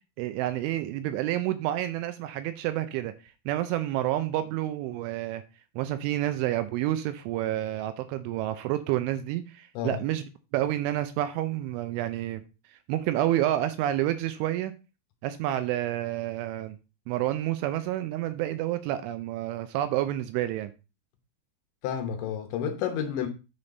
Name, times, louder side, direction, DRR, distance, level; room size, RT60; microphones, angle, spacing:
voice 1, 0.2-3.1 3.5-5.4 5.8-10.2 10.5-12.4 12.7-14.7 15.2-16.8 17.1-20.7, right 13 dB, 80° right, 2.9 m, -29 dB
voice 2, 21.8-23.3, left 8 dB, 75° left, 3.0 m, -30 dB
9.8 x 4.4 x 5.2 m
omnidirectional pair, 5.9 m